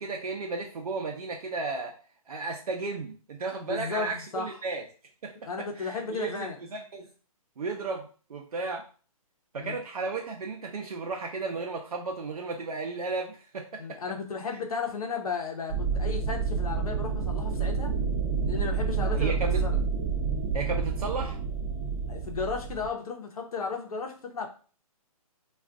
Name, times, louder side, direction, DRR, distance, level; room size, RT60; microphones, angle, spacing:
voice 1, 0.0-1.9 2.3-4.8 5.2-5.3 5.8-7.1 7.6-8.8 9.5-14.0 19.0-19.6 20.5-21.4, right 3 dB, 80° right, 1 dB, 0.6 m, -34 dB
voice 2, 3.6-4.5 5.4-6.6 9.6-9.8 13.8-17.9 18.4-19.8 22.1-24.5, left 4 dB, 75° left, 2 dB, 0.8 m, -34 dB
sound 1, 15.7-22.9, right 5 dB, 30° right, 0.6 m, -29 dB
2.5 x 2.4 x 3.5 m, 0.38 s
hypercardioid pair, 145°, 19 cm